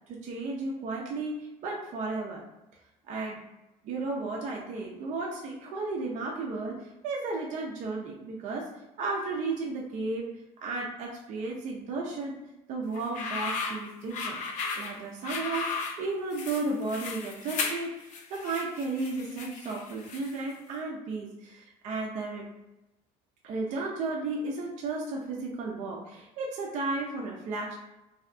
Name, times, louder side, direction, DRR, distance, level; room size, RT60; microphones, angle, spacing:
voice 1, 0.1-2.4 3.1-3.4 3.8-8.7 9.0-10.3 10.6-12.4 12.7-14.4 14.8-18.0 18.3-22.5 23.4-27.8, right 3 dB, 60° right, -2 dB, 0.5 m, -34 dB
sound 1, 12.9-20.5, left 4 dB, 60° left, 0.4 m, -35 dB
2.7 x 2.1 x 2.5 m, 0.98 s
cardioid pair, 110°, 14 cm